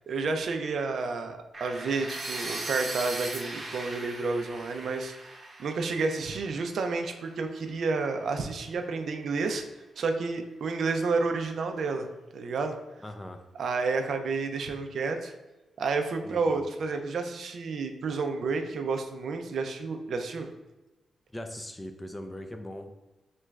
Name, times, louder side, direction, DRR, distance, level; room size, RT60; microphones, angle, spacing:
voice 1, 0.1-5.1 5.6-9.6 10.0-12.1 12.3-12.8 13.6-15.3 15.8-20.5, right 4 dB, 65° right, 5 dB, 0.3 m, -30 dB
sound 1, 1.5-7.5, right 2 dB, 35° right, 0.7 m, -39 dB
voice 2, 13.0-13.4 16.2-16.7 21.3-22.9, left 1 dB, 15° left, 5 dB, 0.3 m, -40 dB
3.0 x 2.3 x 3.2 m, 1.1 s
cardioid pair, 110°, 0 cm